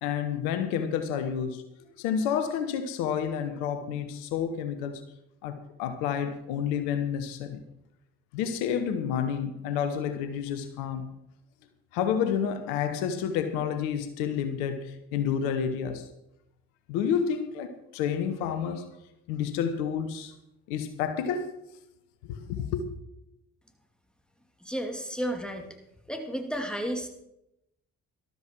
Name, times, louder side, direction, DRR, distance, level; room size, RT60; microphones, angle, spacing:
voice 1, 0.0-1.6 2.0-5.0 5.4-7.6 8.3-11.1 11.9-16.0 16.9-18.9 19.3-20.3 20.7-21.5 22.3-22.8, left 8 dB, 80° left, 1.1 m, -29 dB
voice 2, 24.6-25.7 26.1-27.1, equal, ahead, 2.6 m, -32 dB
13.5 x 12.5 x 4.6 m
hypercardioid pair, 45°, 42 cm